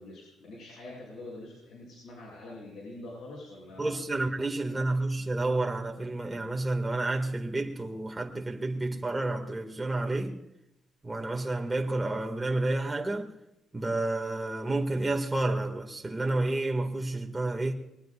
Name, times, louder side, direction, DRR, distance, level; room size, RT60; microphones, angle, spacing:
voice 1, 0.0-3.9 4.7-5.2, left 2 dB, 70° left, 8.0 m, -45 dB
voice 2, 3.8-10.3 11.0-13.3 13.7-17.7, right 2 dB, 15° right, 2.2 m, -30 dB
22.5 x 19.5 x 2.6 m
cardioid pair, 90°, 0 cm